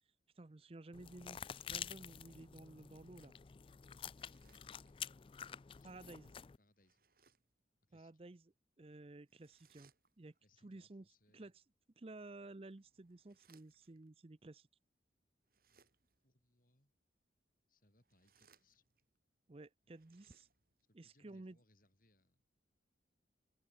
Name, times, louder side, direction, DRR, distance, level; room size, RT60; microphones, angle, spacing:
voice 1, 0.4-1.4 1.7-3.3 5.8-6.3 7.9-8.4 8.8-9.9 10.2-10.3 10.6-11.1 11.3-11.6 12.0-14.7 19.5-20.5 20.9-21.6, right 2 dB, 30° right, 0.6 m, -54 dB
sound 1, 0.9-6.6, left 8 dB, 30° left, 0.3 m, -49 dB
sound 2, 4.0-5.2 6.7-7.6 9.3-10.4 12.2-14.1 15.4-16.3 17.9-19.2 19.8-20.9, right 6 dB, 50° right, 6.7 m, -73 dB
voice 2, 4.4-5.9 6.6-7.1 7.9-8.1 10.4-11.5 15.7-15.8 16.2-16.9 17.7-18.8 20.9-22.4, left 1 dB, 45° left, 6.3 m, -74 dB
head